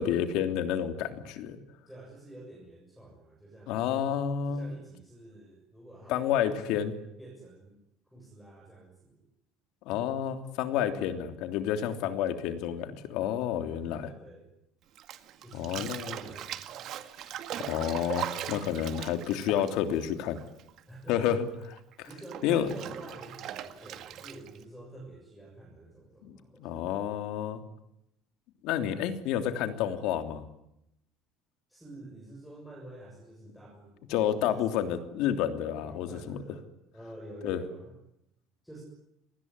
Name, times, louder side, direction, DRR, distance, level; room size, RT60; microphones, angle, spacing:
voice 1, 0.0-1.6 3.7-4.7 6.1-6.9 9.9-14.1 15.5-16.1 17.6-20.4 21.1-22.1 22.4-22.7 26.2-27.6 28.6-30.4 34.1-36.4 37.4-37.6, left 9 dB, 65° left, 8 dB, 3.2 m, -30 dB
voice 2, 1.9-3.9 4.5-6.9 7.2-7.8 8.1-9.3 11.8-12.4 13.8-14.5 15.4-16.9 20.9-21.2 22.0-26.9 31.7-34.1 34.5-34.8 35.8-36.6 36.9-37.9 38.6-38.8, right 1 dB, ahead, -2 dB, 7.1 m, -48 dB
Bathtub (filling or washing), 15.0-20.8 21.1-24.6, right 11 dB, 45° right, 2.0 m, -40 dB
27.5 x 20.0 x 9.7 m, 0.81 s
cardioid pair, 160°, 0 cm